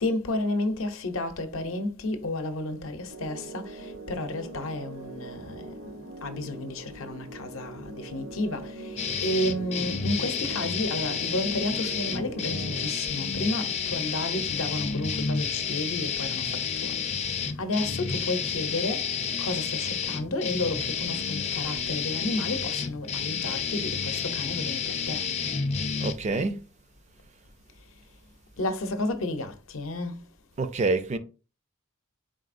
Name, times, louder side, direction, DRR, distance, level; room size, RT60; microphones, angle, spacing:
voice 1, 0.0-5.9 6.2-19.1 19.4-25.2 28.6-30.1, left 2 dB, 70° left, 0.6 m, -32 dB
sound 1, 3.1-12.9, right 2 dB, 75° right, 0.8 m, -42 dB
sound 2, 9.0-26.1, left 6 dB, 30° left, 0.4 m, -30 dB
voice 2, 26.0-26.6 30.6-31.2, right 3 dB, 35° right, 0.4 m, -27 dB
4.1 x 3.8 x 2.5 m
head